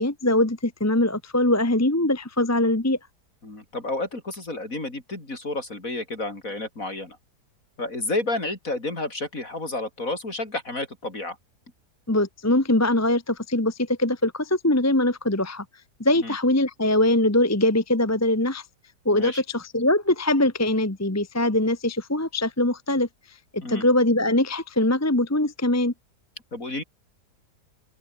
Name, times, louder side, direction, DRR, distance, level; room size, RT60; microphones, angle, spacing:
voice 1, 0.0-3.0 12.1-15.6 16.0-18.6 19.0-23.1 23.5-25.9, left 1 dB, 10° left, 1.3 m, -22 dB
voice 2, 3.4-7.2 7.8-11.4 16.2-16.4 19.1-19.4 23.6-23.9 26.5-26.8, left 2 dB, 50° left, 6.1 m, -31 dB
open air
omnidirectional pair, 1.8 m